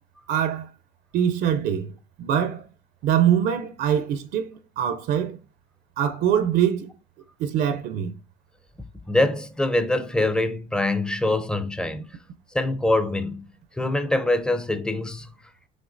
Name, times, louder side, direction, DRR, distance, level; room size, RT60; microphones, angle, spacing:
voice 1, 0.3-0.7 1.1-2.6 3.0-5.4 6.0-6.9 7.4-8.1, right 9 dB, 75° right, 0.5 m, -23 dB
voice 2, 9.1-12.0 12.5-13.4 13.8-15.3, left 2 dB, 5° left, 0.5 m, -24 dB
5.2 x 3.2 x 2.5 m
cardioid pair, 110°, 17 cm